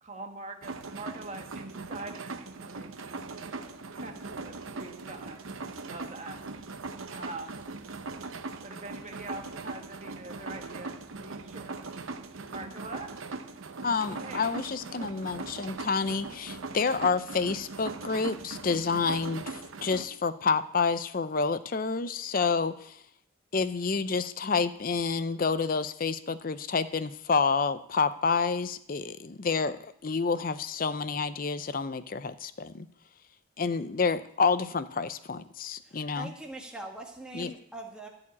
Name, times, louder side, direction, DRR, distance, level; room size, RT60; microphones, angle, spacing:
voice 1, 0.0-3.2 3.9-4.1 4.4-5.4 5.8-6.4 7.1-7.6 8.6-11.9 12.5-13.1 14.1-14.5 14.8-15.1, right 2 dB, 35° right, 4 dB, 1.4 m, -43 dB
sound 1, 0.6-20.0, right 3 dB, 85° right, 0.8 m, -40 dB
voice 2, 13.8-23.0 23.5-32.9 33.6-36.3 37.3-37.5, left 4 dB, 45° left, 13 dB, 0.5 m, -29 dB
voice 3, 35.8-38.1, right 2 dB, 5° right, 0 dB, 1.6 m, -42 dB
15.0 x 5.0 x 8.6 m, 0.71 s
head